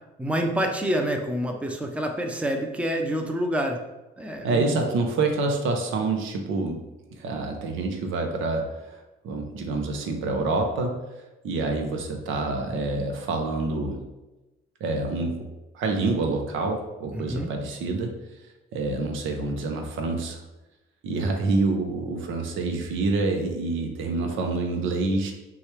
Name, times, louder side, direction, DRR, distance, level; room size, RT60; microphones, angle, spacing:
voice 1, 0.2-3.8 4.2-4.8 17.1-17.5, equal, 5° right, 3 dB, 0.6 m, -27 dB
voice 2, 4.4-6.8 7.1-9.0 9.2-11.0 11.4-14.0 14.8-15.5 15.7-18.1 18.7-20.4 21.0-25.3, right 3 dB, 80° right, 3 dB, 0.7 m, -27 dB
6.1 x 2.4 x 3.2 m, 1.0 s
cardioid pair, 90°, 20 cm